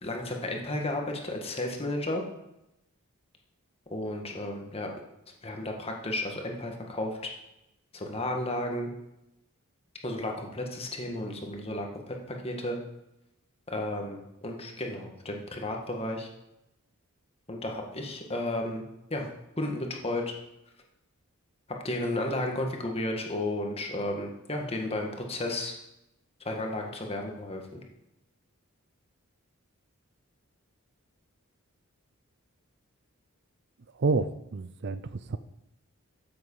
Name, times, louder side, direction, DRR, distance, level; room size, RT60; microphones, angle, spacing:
voice 1, 0.0-2.2 3.9-4.9 5.4-7.2 7.9-8.9 10.0-12.8 13.7-16.3 17.5-18.8 19.1-19.3 19.6-20.2 21.8-25.7 26.5-27.8, left 1 dB, 25° left, 2 dB, 1.8 m, -33 dB
voice 2, 34.0-35.4, right 3 dB, 50° right, 13 dB, 0.5 m, -29 dB
13.0 x 7.8 x 5.7 m, 0.88 s
head